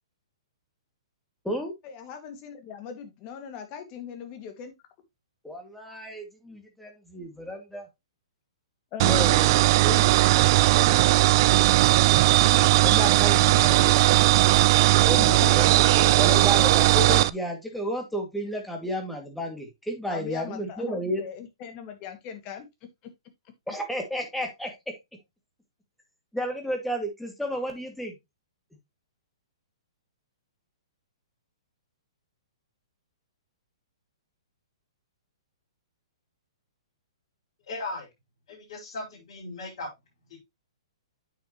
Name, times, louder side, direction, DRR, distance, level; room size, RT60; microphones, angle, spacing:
voice 1, 1.8-4.7 8.9-9.3 15.2-16.1 20.1-22.7, left 8 dB, 35° left, 2.2 m, -39 dB
voice 2, 5.4-7.9 9.0-11.0 12.8-14.0 15.0-21.2 23.7-24.9 26.3-28.1, equal, 5° left, 2.3 m, -32 dB
sound 1, 9.0-17.3, right 17 dB, 45° right, 0.4 m, -18 dB
voice 3, 37.7-38.1 38.5-39.9, left 2 dB, 55° left, 5.4 m, -37 dB
9.0 x 6.0 x 3.1 m
hypercardioid pair, 130°, 3 cm